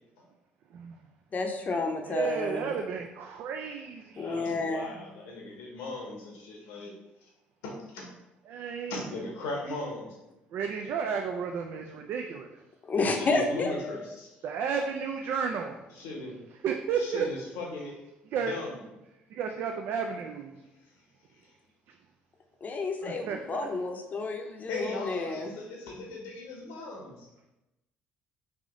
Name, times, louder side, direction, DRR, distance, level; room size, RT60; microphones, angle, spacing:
voice 1, 1.3-2.7 4.2-5.0 12.9-14.1 22.6-25.5, left 3 dB, 40° left, 4 dB, 0.6 m, -30 dB
voice 2, 2.0-4.5 8.5-9.1 10.5-12.6 14.4-15.9 16.6-17.3 18.3-18.6 19.3-20.5 21.9-22.0 23.0-23.7, right 6 dB, 65° right, 3 dB, 0.3 m, -33 dB
voice 3, 4.2-6.9 7.2-7.3 7.6-8.0 8.9-10.2 13.1-14.3 16.0-16.4 17.0-17.9 18.5-18.8 24.7-27.3, left 2 dB, 80° left, -2 dB, 1.0 m, -38 dB
3.4 x 2.6 x 3.7 m, 0.95 s
supercardioid pair, 65°, 4 cm